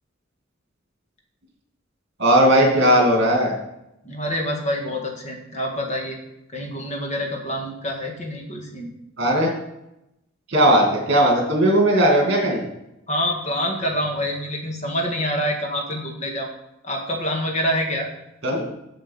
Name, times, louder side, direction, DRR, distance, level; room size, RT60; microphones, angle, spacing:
voice 1, 2.2-3.5 9.2-9.5 10.5-12.7 18.4-18.7, right 1 dB, 55° right, 1 dB, 2.3 m, -17 dB
voice 2, 4.0-6.2 6.5-8.9 13.1-16.5 16.8-18.1, equal, 35° left, 0 dB, 1.8 m, -26 dB
7.6 x 7.0 x 5.6 m, 0.87 s
head